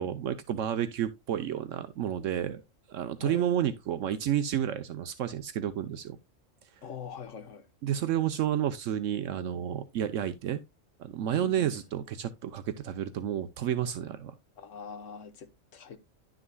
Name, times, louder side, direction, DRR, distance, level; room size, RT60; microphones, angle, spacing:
voice 1, 0.0-2.6 2.9-6.2 7.8-10.6 11.0-14.3, right 10 dB, 75° right, 1.0 m, -31 dB
voice 2, 6.8-7.7 11.3-11.7 14.6-16.0, left 6 dB, 75° left, 1.5 m, -43 dB
11.0 x 6.3 x 2.2 m
omnidirectional pair, 1.3 m